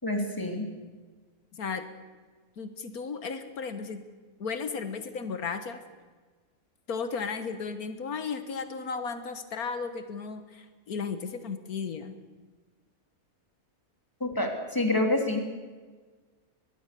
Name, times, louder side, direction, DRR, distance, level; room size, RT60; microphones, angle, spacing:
voice 1, 0.0-0.7 14.2-15.4, left 1 dB, 15° left, 3 dB, 3.1 m, -27 dB
voice 2, 2.6-4.0 4.4-5.8 6.9-12.2, left 5 dB, 80° left, 9 dB, 1.8 m, -34 dB
23.0 x 20.5 x 6.8 m, 1.4 s
omnidirectional pair, 1.5 m